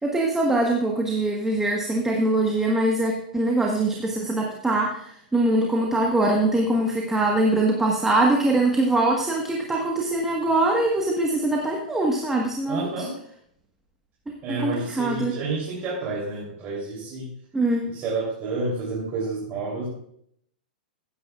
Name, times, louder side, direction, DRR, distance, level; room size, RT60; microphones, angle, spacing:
voice 1, 0.0-12.9 14.5-15.3 17.5-17.9, right 2 dB, 10° right, -1 dB, 1.3 m, -23 dB
voice 2, 12.7-13.1 14.4-17.3 17.9-19.9, right 3 dB, 35° right, -4 dB, 3.2 m, -29 dB
15.0 x 9.5 x 2.4 m, 0.70 s
hypercardioid pair, 110°, 5 cm